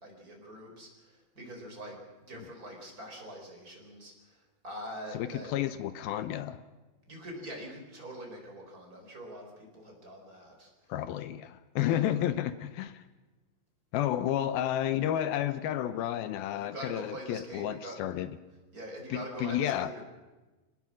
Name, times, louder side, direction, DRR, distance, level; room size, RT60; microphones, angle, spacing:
voice 1, 0.0-5.5 6.1-6.2 7.1-10.7 11.8-12.2 16.6-18.0 18.7-20.0, equal, 20° right, 1 dB, 4.9 m, -44 dB
voice 2, 5.1-6.6 10.9-13.0 13.9-18.3 19.1-19.9, left 11 dB, 85° left, 12 dB, 2.1 m, -31 dB
25.5 x 20.0 x 6.3 m, 1.2 s
omnidirectional pair, 5.3 m